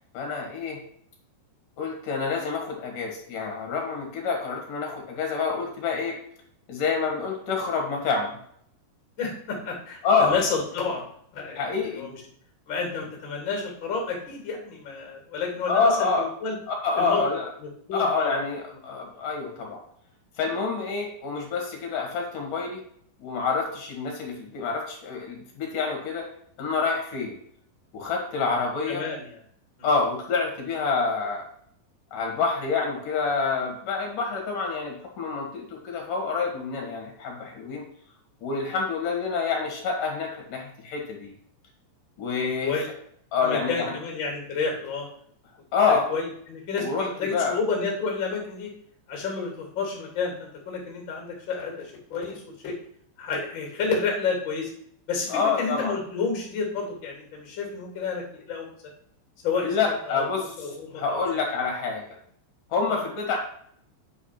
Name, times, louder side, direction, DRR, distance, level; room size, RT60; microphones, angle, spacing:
voice 1, 0.1-0.8 1.8-6.1 6.7-8.4 10.0-10.3 11.6-12.1 15.7-16.3 16.7-17.5 17.9-19.8 20.4-22.8 23.2-26.3 26.6-27.4 27.9-29.0 29.8-31.4 32.1-37.8 38.4-41.3 42.2-42.9 43.3-43.9 45.7-46.1 46.8-47.6 55.3-55.9 59.6-60.7 61.0-62.0 62.7-63.4, left 4 dB, 55° left, 1 dB, 3.0 m, -27 dB
voice 2, 9.2-11.1 11.3-11.6 11.9-12.2 12.7-16.6 17.0-17.2 17.6-18.4 18.7-18.8 28.9-29.4 42.6-42.9 43.4-45.1 45.9-48.7 49.1-52.7 53.2-54.7 55.1-58.7 59.4-59.8 60.1-60.3 60.6-61.2 62.9-63.0, left 4 dB, 30° left, 0 dB, 2.8 m, -30 dB
9.1 x 4.9 x 5.9 m, 0.66 s
omnidirectional pair, 5.2 m